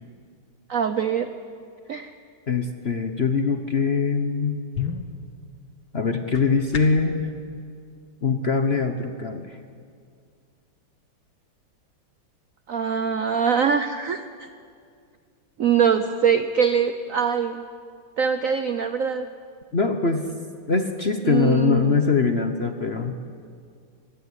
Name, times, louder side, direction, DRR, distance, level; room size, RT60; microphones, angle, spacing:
voice 1, 0.7-1.3 1.9-2.1 12.7-14.2 15.6-17.6 18.2-19.3 21.2-22.0, right 7 dB, 65° right, 9 dB, 0.8 m, -23 dB
voice 2, 2.5-4.6 5.9-7.2 8.2-9.6 19.7-20.3 20.7-23.2, left 5 dB, 40° left, 6 dB, 1.0 m, -22 dB
sound 1, 4.5-7.2, left 7 dB, 65° left, 2.2 m, -34 dB
24.5 x 16.0 x 9.8 m, 2.3 s
omnidirectional pair, 2.4 m